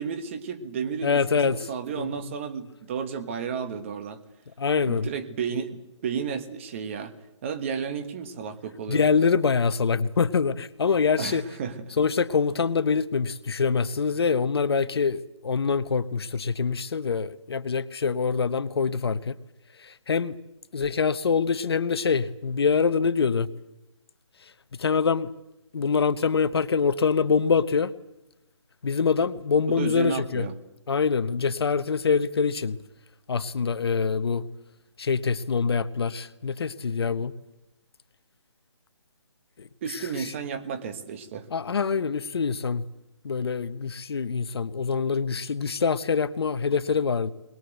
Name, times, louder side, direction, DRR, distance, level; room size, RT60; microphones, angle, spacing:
voice 1, 0.0-4.2 4.8-7.1 7.4-9.1 11.2-11.7 29.7-30.5 39.8-41.5, right 6 dB, 25° right, 9 dB, 1.5 m, -32 dB
voice 2, 1.0-1.7 2.0-2.3 4.6-5.1 8.9-11.4 12.0-19.4 19.8-20.4 20.7-23.5 24.8-25.3 25.7-27.9 28.8-30.5 30.9-32.8 33.3-34.4 35.0-37.3 39.6-40.3 41.5-42.8 43.2-47.3, left 5 dB, 55° left, 14 dB, 1.0 m, -25 dB
21.5 x 21.5 x 8.1 m, 0.93 s
hypercardioid pair, 165°, 16 cm